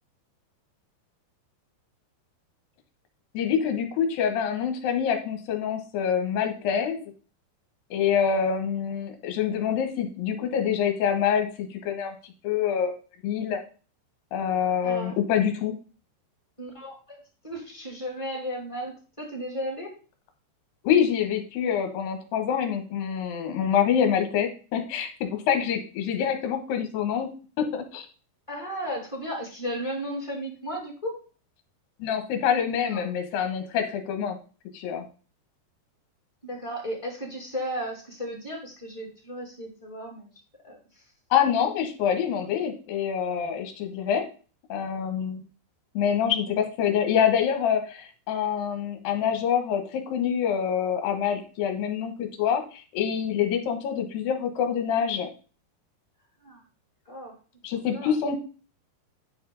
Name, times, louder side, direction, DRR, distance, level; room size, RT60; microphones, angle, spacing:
voice 1, 3.3-7.0 7.9-12.2 12.4-13.6 14.3-15.7 20.8-27.3 27.6-28.1 32.0-34.4 34.7-35.0 41.3-44.2 44.7-45.4 45.9-55.3 57.6-58.4, left 8 dB, 65° left, 5 dB, 2.7 m, -26 dB
voice 2, 14.8-15.2 16.6-19.9 28.5-31.2 32.8-33.1 36.4-40.3 40.6-41.0 56.4-56.6 57.1-57.3 57.7-58.1, equal, 10° left, -2 dB, 1.8 m, -35 dB
9.6 x 5.2 x 4.0 m, 0.37 s
omnidirectional pair, 5.1 m